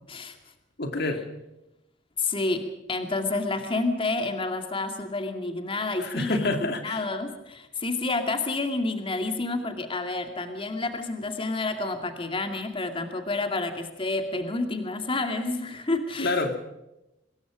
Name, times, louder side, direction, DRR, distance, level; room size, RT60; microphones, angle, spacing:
voice 1, 0.8-1.3 6.0-7.0 16.2-16.6, left 2 dB, 60° left, 6 dB, 2.5 m, -27 dB
voice 2, 2.2-6.6 6.8-16.4, left 3 dB, 30° left, 6 dB, 2.4 m, -29 dB
24.5 x 21.0 x 5.1 m, 0.93 s
head